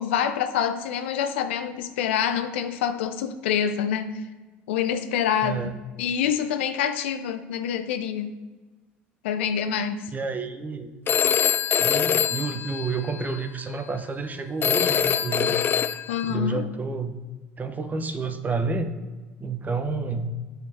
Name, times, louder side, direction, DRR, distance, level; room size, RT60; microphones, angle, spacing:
voice 1, 0.0-4.2 4.7-5.6 6.0-8.3 9.2-10.1 16.1-16.7, left 8 dB, 75° left, 9 dB, 0.6 m, -26 dB
voice 2, 5.4-5.7 10.1-10.9 11.8-15.6 16.2-17.2 17.6-18.9 19.4-20.3, right 4 dB, 25° right, 8 dB, 1.0 m, -30 dB
Telephone, 11.1-13.4 14.6-16.3, left 8 dB, 35° left, 0.3 m, -24 dB
8.3 x 7.0 x 4.3 m, 1.3 s
hypercardioid pair, 65°, 6 cm